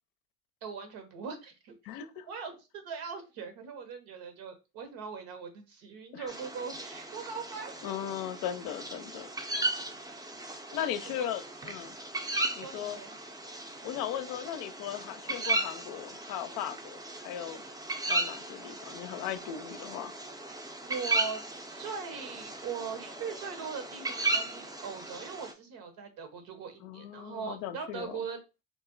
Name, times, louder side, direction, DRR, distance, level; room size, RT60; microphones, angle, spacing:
voice 1, 0.6-1.7 2.3-7.7 10.8-11.3 12.5-13.1 20.9-21.4 21.7-28.4, right 6 dB, 70° right, 1.0 m, -40 dB
voice 2, 1.8-2.3 6.1-6.3 7.8-9.3 10.7-12.0 12.6-13.0 13.8-17.6 18.1-20.1 26.8-28.2, left 10 dB, 65° left, 0.5 m, -37 dB
sound 1, 6.3-25.5, right 2 dB, 10° right, 0.5 m, -36 dB
2.4 x 2.0 x 3.8 m
supercardioid pair, 85°, 36 cm